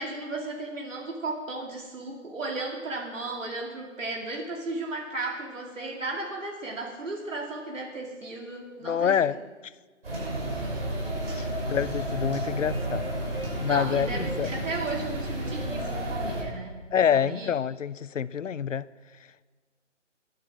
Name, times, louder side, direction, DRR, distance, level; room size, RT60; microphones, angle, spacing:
voice 1, 0.0-9.4 10.5-10.9 11.4-11.5 13.7-17.5, right 2 dB, 80° right, 2.5 m, -35 dB
voice 2, 8.8-9.4 11.3-13.1 13.6-14.5 16.9-18.9, left 8 dB, 75° left, 0.6 m, -27 dB
sound 1, 10.0-16.4, right 1 dB, 50° right, 5.6 m, -31 dB
13.0 x 12.0 x 6.1 m
hypercardioid pair, 175°, 38 cm